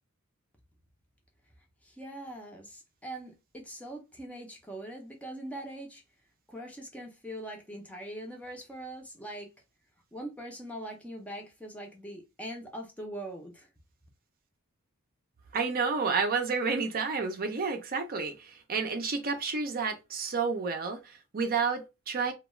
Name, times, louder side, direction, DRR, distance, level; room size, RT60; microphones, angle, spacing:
voice 1, 1.8-6.0 6.5-9.5 10.1-13.7, right 1 dB, 5° left, 0.6 m, -42 dB
voice 2, 15.5-22.3, right 5 dB, 40° right, 0.5 m, -30 dB
2.3 x 2.2 x 3.0 m
head